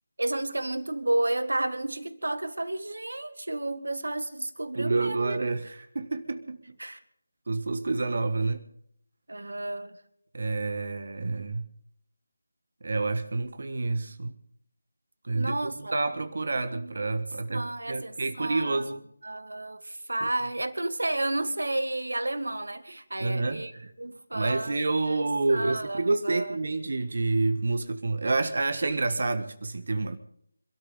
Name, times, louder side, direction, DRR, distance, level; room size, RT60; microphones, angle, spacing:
voice 1, 0.2-5.4 6.8-7.0 9.3-9.9 15.3-15.9 16.6-16.9 17.5-18.8 19.2-23.7 24.0-26.6, right 1 dB, 70° right, 2.0 m, -31 dB
voice 2, 4.8-6.8 7.5-8.6 10.3-11.7 12.8-14.4 15.2-19.1 23.2-23.9 24.3-30.2, right 3 dB, 55° right, 1.6 m, -28 dB
26.5 x 13.5 x 3.8 m
figure-of-eight pair, 160°, 0 cm